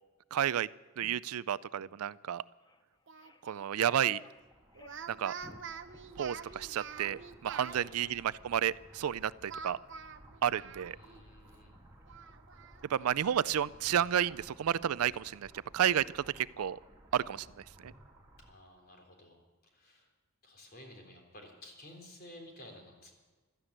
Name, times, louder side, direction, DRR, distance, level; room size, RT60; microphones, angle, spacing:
voice 1, 0.3-0.7 1.0-2.4 3.5-4.2 5.1-5.3 6.2-9.8 10.4-11.0 12.9-16.8 17.1-17.5 17.8-17.9, right 9 dB, 80° right, 19 dB, 0.4 m, -31 dB
sound 1, 1.0-1.2 1.7-1.9 2.6-2.8 3.1-4.4 4.7-5.1 5.3-5.6 5.9-6.1 6.4-6.7 7.0-7.3 7.7-8.0, left 2 dB, 20° left, 0.6 m, -53 dB
Speech, 3.1-3.7 4.8-7.8 9.5-11.2 11.5-11.6 12.1-13.5, right 6 dB, 55° right, 0.7 m, -46 dB
sound 2, 4.4-18.5, right 1 dB, 15° right, 2.6 m, -58 dB
voice 2, 7.6-8.1 10.7-11.8 18.4-20.1 20.4-23.1, left 1 dB, 45° left, 2 dB, 3.5 m, -54 dB
16.0 x 13.0 x 6.7 m, 1.3 s
head